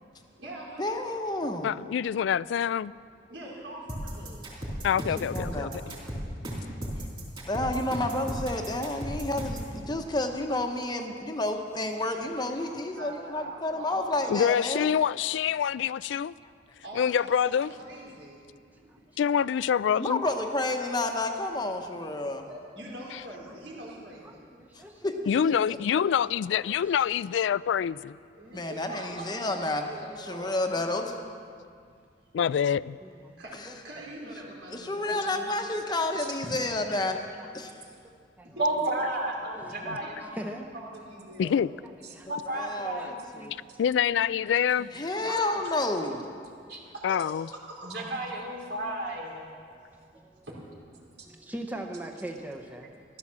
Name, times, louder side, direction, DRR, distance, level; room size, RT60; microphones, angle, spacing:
voice 1, 0.1-0.9 3.3-4.4 5.8-6.0 12.0-12.2 12.6-12.7 13.0-14.3 16.8-19.0 22.3-24.4 28.3-30.7 32.5-32.6 33.4-35.2 36.4-36.5 38.4-38.6 39.8-41.6 45.6-45.8 46.9-47.2 47.5-48.0 49.2-49.3 50.5-50.6, right 1 dB, 90° right, -3 dB, 4.3 m, -44 dB
voice 2, 0.8-1.7 4.9-5.1 5.3-5.7 7.0-7.1 7.5-14.9 20.0-22.5 24.7-25.2 25.4-25.8 28.5-29.8 30.2-31.1 34.7-37.2 37.5-37.8 42.3-43.6 44.9-46.2 46.7-46.8, left 2 dB, 25° left, 4 dB, 1.0 m, -30 dB
voice 3, 1.6-2.9 4.8-5.9 14.3-16.3 16.9-17.7 19.2-20.2 25.3-28.2 32.3-33.0 41.4-41.7 43.8-44.9 47.0-47.5, left 8 dB, 85° left, 19 dB, 0.3 m, -26 dB
sound 1, 3.9-9.7, equal, 30° right, 3.6 m, -35 dB
voice 4, 24.2-25.0 25.6-26.0 26.5-26.7 28.8-28.9 29.3-29.6 30.3-31.2 33.0-33.8 35.3-35.7 36.6-36.7 37.4-37.5 38.4-38.6 39.4-39.9 40.4-40.6 42.1-42.7 43.0-43.8 45.2-45.6 50.1-50.5 51.2-52.9, right 1 dB, 10° right, 2 dB, 0.8 m, -42 dB
voice 5, 38.6-40.2 42.3-43.1 46.7-46.8 47.8-49.5, right 1 dB, 60° right, 0 dB, 2.8 m, -31 dB
15.0 x 12.0 x 7.4 m, 2.2 s
head